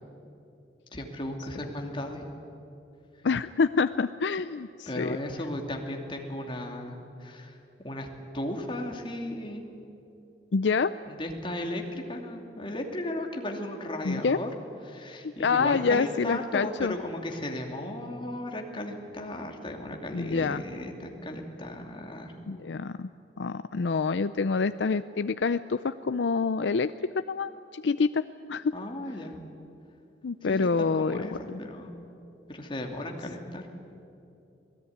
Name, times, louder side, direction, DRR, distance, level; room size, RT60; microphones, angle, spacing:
voice 1, 0.9-2.2 4.9-8.1 8.3-9.6 11.1-14.5 14.9-22.3 28.7-29.3 30.5-31.9 32.5-33.6, left 1 dB, 30° left, 2 dB, 2.8 m, -35 dB
voice 2, 3.2-5.2 10.5-10.9 14.0-14.4 15.2-16.9 20.1-20.6 22.5-23.1 23.4-28.2 28.5-28.7 30.2-31.6, left 4 dB, 85° left, 12 dB, 0.5 m, -27 dB
26.5 x 18.0 x 9.5 m, 2.8 s
head